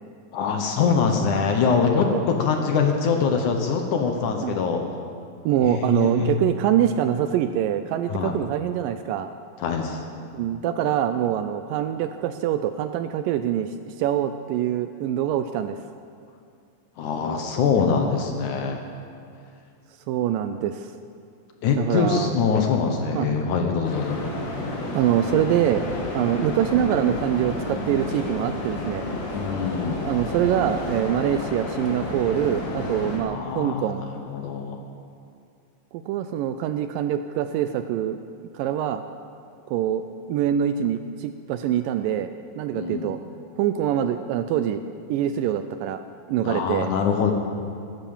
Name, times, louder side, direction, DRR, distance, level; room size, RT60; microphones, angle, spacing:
voice 1, 0.3-4.8 5.6-6.4 8.1-8.3 9.6-10.0 17.0-18.8 21.6-24.2 29.3-30.0 33.3-34.8 42.8-43.1 46.4-47.3, left 5 dB, 65° left, 3 dB, 2.3 m, -23 dB
voice 2, 5.4-9.3 10.3-15.8 20.1-20.9 21.8-22.4 23.1-23.3 24.9-25.8 26.1-29.1 30.1-34.0 35.9-38.2 38.5-39.0 39.7-43.2 43.6-44.8 45.1-46.0 46.3-46.9, right 10 dB, 80° right, 9 dB, 2.1 m, -24 dB
sound 1, 23.8-33.2, left 2 dB, 50° left, 3.2 m, -31 dB
15.0 x 13.0 x 7.2 m, 2.3 s
omnidirectional pair, 4.3 m